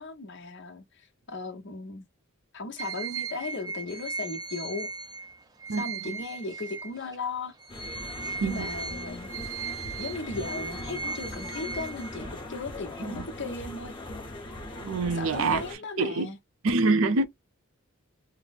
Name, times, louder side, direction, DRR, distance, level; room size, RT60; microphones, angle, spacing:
voice 1, 0.0-2.1 2.5-4.9 5.8-7.5 8.4-9.3 10.0-13.9 15.1-16.4, left 3 dB, 60° left, 1.0 m, -37 dB
sound 1, 2.8-7.2 7.6-12.5, right 4 dB, 20° right, 0.5 m, -37 dB
sound 2, 7.7-15.8, left 1 dB, 25° left, 1.2 m, -40 dB
voice 2, 14.8-15.6 16.0-16.3 16.6-17.3, right 3 dB, 75° right, 0.6 m, -25 dB
3.0 x 2.1 x 4.1 m
head